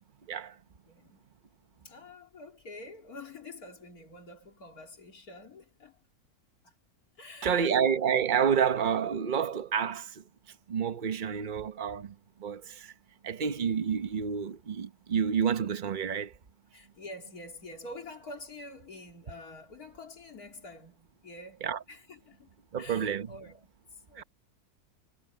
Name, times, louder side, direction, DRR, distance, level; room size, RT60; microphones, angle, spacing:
voice 1, 0.9-1.2 1.8-6.1 6.6-6.7 7.2-7.8 16.7-22.5 22.8-24.2, left 2 dB, 80° left, 3.3 m, -47 dB
voice 2, 7.4-10.2 10.7-12.1 12.4-12.9 13.2-16.3 21.6-21.8 22.7-23.3 24.2-24.3, right 7 dB, 35° right, 1.0 m, -29 dB
omnidirectional pair, 1.6 m